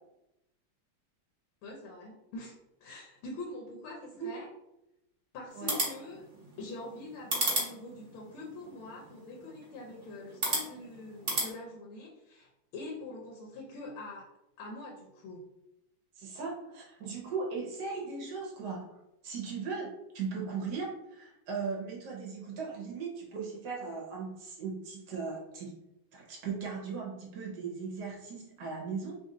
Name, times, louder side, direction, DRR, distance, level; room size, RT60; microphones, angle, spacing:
voice 1, 1.6-2.5 2.8-4.5 5.3-6.2 6.6-14.2 14.6-15.4, left 2 dB, 85° left, -1 dB, 1.6 m, -44 dB
sound 1, 5.5-11.5, right 2 dB, 35° right, 1.1 m, -36 dB
voice 2, 16.2-25.8 26.1-29.2, right 5 dB, 60° right, -2 dB, 1.3 m, -38 dB
3.6 x 2.5 x 3.8 m, 0.88 s
omnidirectional pair, 2.3 m